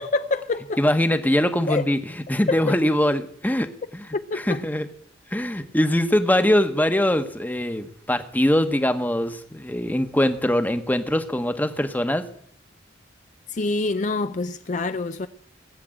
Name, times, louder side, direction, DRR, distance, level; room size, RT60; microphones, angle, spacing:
voice 1, 0.0-0.8 1.7-1.8 2.5-2.7 4.3-4.6 13.5-15.3, left 3 dB, 40° left, 0.5 m, -26 dB
voice 2, 0.8-3.7 3.9-4.9 5.3-12.3, left 1 dB, 10° left, 1.1 m, -22 dB
18.5 x 7.5 x 8.9 m
head